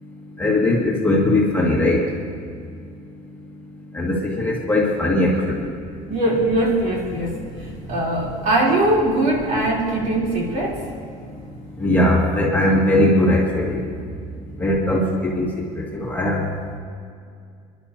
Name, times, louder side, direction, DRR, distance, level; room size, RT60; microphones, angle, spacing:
voice 1, 0.4-2.0 3.9-5.3 11.8-13.8 14.6-15.5 15.9-16.4, left 1 dB, 10° left, -4 dB, 2.1 m, -19 dB
voice 2, 6.1-10.9, right 1 dB, 55° right, -3 dB, 3.5 m, -21 dB
30.0 x 11.5 x 2.8 m, 2.3 s
cardioid pair, 160°, 15 cm